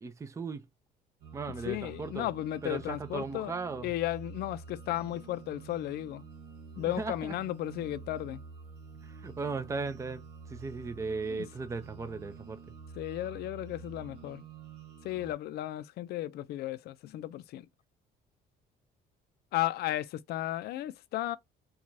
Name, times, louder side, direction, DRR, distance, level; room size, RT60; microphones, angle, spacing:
voice 1, 0.0-0.6 1.3-2.3 2.6-3.9 6.8-7.4 9.2-10.2 10.5-12.6, right 4 dB, 15° right, 0.5 m, -37 dB
sound 1, 1.2-15.3, right 5 dB, 80° right, 1.2 m, -48 dB
voice 2, 1.6-3.5 3.8-6.2 6.8-8.4 11.2-11.5 13.0-14.4 15.0-17.7 19.5-21.4, left 14 dB, 70° left, 0.5 m, -34 dB
4.7 x 2.4 x 2.6 m
cardioid pair, 110°, 17 cm